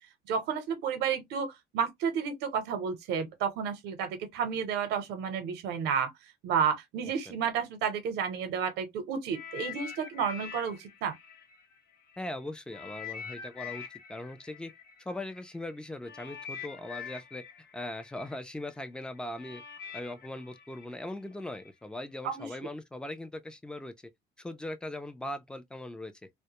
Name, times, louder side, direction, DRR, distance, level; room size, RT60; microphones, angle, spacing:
voice 1, 0.3-6.1 6.4-11.2 22.2-22.5, right 7 dB, 85° right, 0.8 m, -31 dB
sound 1, 9.3-12.2 12.7-21.7 22.4-22.5, left 7 dB, 65° left, 0.7 m, -45 dB
voice 2, 12.2-14.7 15.0-17.4 17.7-19.6 19.9-23.9 24.4-26.3, left 1 dB, 5° left, 0.4 m, -40 dB
2.1 x 2.0 x 2.8 m
cardioid pair, 110°, 17 cm